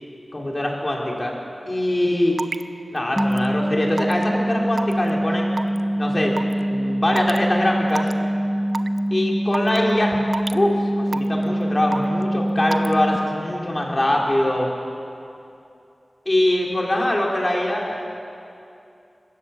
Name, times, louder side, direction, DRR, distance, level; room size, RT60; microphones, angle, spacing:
voice 1, 0.3-1.3 1.7-2.3 2.9-5.5 6.0-6.3 6.7-8.1 9.1-10.2 10.5-14.7 16.3-18.1, left 1 dB, 30° left, -1 dB, 3.9 m, -23 dB
Raindrop / Water tap faucet / Drip, 2.4-2.6 3.2-3.5 4.0-4.2 4.8-5.1 5.6-5.8 6.4-6.5 7.2-7.4 7.9-8.1 8.7-9.0 9.5-9.8 10.3-10.6 11.1-11.4 11.9-12.2 12.7-12.9, right 3 dB, 60° right, 0.6 m, -28 dB
sound 1, 3.2-13.2, equal, 10° left, 0.7 m, -24 dB
21.0 x 17.0 x 7.2 m, 2.6 s
wide cardioid pair, 70°, 0 cm